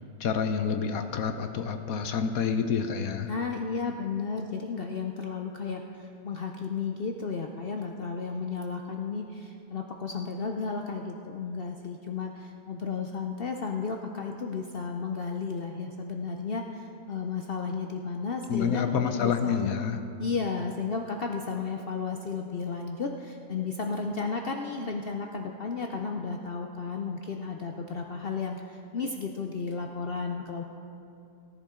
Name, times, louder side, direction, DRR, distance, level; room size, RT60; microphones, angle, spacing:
voice 1, 0.2-3.3 18.5-20.0, left 6 dB, 65° left, 7 dB, 1.0 m, -28 dB
voice 2, 3.3-19.6 20.2-30.6, left 5 dB, 85° left, 3 dB, 0.5 m, -33 dB
18.0 x 10.5 x 3.7 m, 2.7 s
omnidirectional pair, 1.8 m